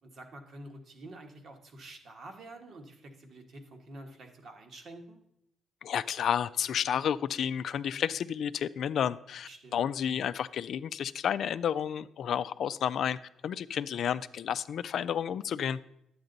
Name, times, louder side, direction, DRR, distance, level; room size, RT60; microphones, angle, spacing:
voice 1, 0.0-5.2 9.4-9.9, right 2 dB, 60° right, 3 dB, 1.5 m, -48 dB
voice 2, 5.8-13.2 13.4-15.8, left 9 dB, 65° left, 14 dB, 0.3 m, -31 dB
10.5 x 8.7 x 3.9 m, 0.78 s
cardioid pair, 90°, 0 cm